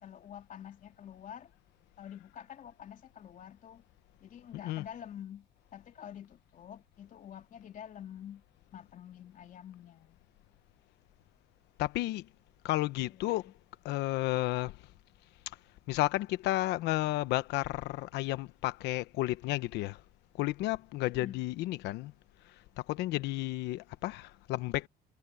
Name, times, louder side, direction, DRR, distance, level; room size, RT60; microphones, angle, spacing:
voice 1, 0.0-1.5 2.0-3.8 4.2-5.5 5.7-8.4 8.7-10.2 13.1-13.5 21.1-21.4, left 9 dB, 50° left, 3.0 m, -47 dB
voice 2, 4.5-4.8 11.8-12.3 12.6-13.5 13.8-14.8 15.9-20.0 20.4-22.1 22.9-24.9, left 17 dB, 90° left, 1.1 m, -32 dB
cardioid pair, 110°, 17 cm